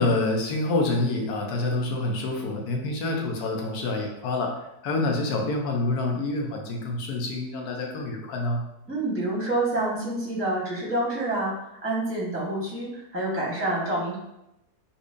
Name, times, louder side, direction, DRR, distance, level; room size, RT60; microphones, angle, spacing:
voice 1, 0.0-4.5 4.8-8.6, left 2 dB, 80° left, 1 dB, 1.2 m, -27 dB
voice 2, 8.9-11.5 11.8-14.2, right 2 dB, 10° right, -5 dB, 0.8 m, -27 dB
4.0 x 2.7 x 2.5 m, 0.87 s
omnidirectional pair, 1.6 m